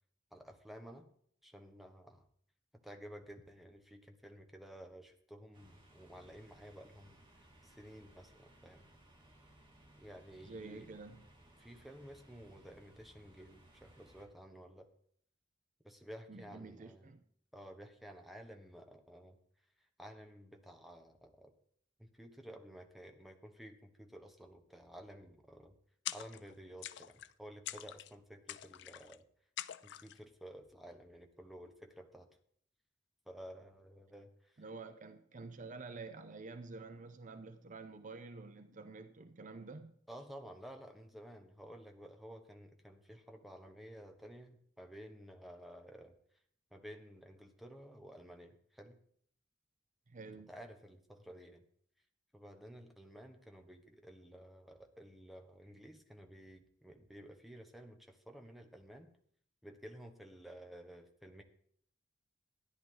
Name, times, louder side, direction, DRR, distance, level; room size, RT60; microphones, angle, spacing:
voice 1, 0.3-1.1 1.4-2.2 2.7-7.2 7.6-8.9 10.0-10.9 11.6-14.9 15.8-17.1 17.5-19.4 20.0-21.5 22.0-25.7 26.1-29.2 29.8-32.3 33.3-34.6 40.1-46.2 46.7-49.0 50.5-51.6 52.3-59.1 59.6-61.4, equal, ahead, 5 dB, 1.2 m, -53 dB
sound 1, 5.5-14.3, right 1 dB, 25° right, 2.4 m, -63 dB
voice 2, 10.4-11.3 16.3-17.2 34.6-39.9 50.1-50.5, right 3 dB, 45° right, 10 dB, 0.6 m, -49 dB
sound 2, 26.1-26.5 26.8-27.3 27.7-28.1 28.5-29.2 29.6-30.2, left 13 dB, 65° left, 0.4 m, -44 dB
13.5 x 10.0 x 3.9 m, 0.63 s
head